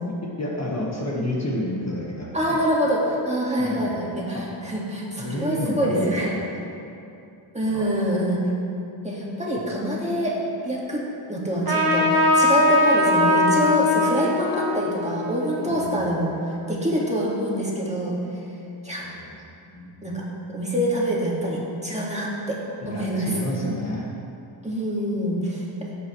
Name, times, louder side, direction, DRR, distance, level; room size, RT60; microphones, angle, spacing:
voice 1, 0.1-2.6 3.6-4.0 4.3-4.5 5.2-6.6 7.6-7.9 9.6-9.7 15.7-16.1 19.0-19.4 19.6-20.0 22.8-24.1 25.0-25.1, left 1 dB, 35° left, -3 dB, 1.7 m, -31 dB
voice 2, 2.3-6.4 7.5-8.4 9.0-10.4 10.6-18.2 18.8-19.1 20.0-20.2 20.5-22.6 22.9-23.3 24.6-25.6, equal, 15° right, -5 dB, 2.1 m, -25 dB
Trumpet, 11.7-16.7, left 2 dB, 45° right, 1.7 m, -21 dB
16.0 x 8.5 x 3.2 m, 2.7 s
wide cardioid pair, 95°, 47 cm